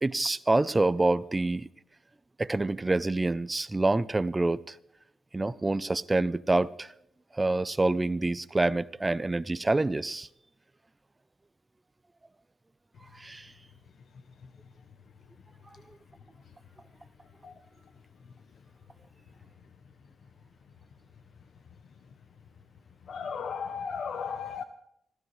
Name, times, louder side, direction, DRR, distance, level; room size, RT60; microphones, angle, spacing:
voice 1, 0.0-1.7 2.4-4.7 5.3-6.9 7.3-10.3 13.2-13.5, right 2 dB, 20° right, 0.5 m, -27 dB
voice 2, 23.1-24.6, left 6 dB, 60° left, 0.7 m, -35 dB
25.0 x 15.0 x 3.2 m
cardioid pair, 105°, 0 cm